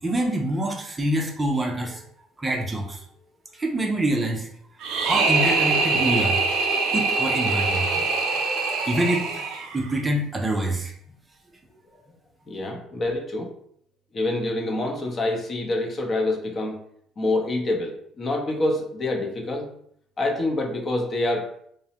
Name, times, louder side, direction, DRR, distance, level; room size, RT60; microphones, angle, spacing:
voice 1, 0.0-2.0 2.4-3.0 3.5-4.5 4.9-6.4 6.9-8.0 8.9-9.4 9.7-10.9, right 1 dB, 20° right, 1 dB, 0.5 m, -26 dB
sound 1, 4.8-9.9, right 3 dB, 75° right, 0.5 m, -23 dB
voice 2, 12.5-13.5 14.1-16.8 17.2-19.7 20.2-21.5, left 2 dB, 35° left, 1 dB, 0.6 m, -26 dB
3.0 x 2.0 x 2.8 m, 0.67 s
cardioid pair, 95°, 0 cm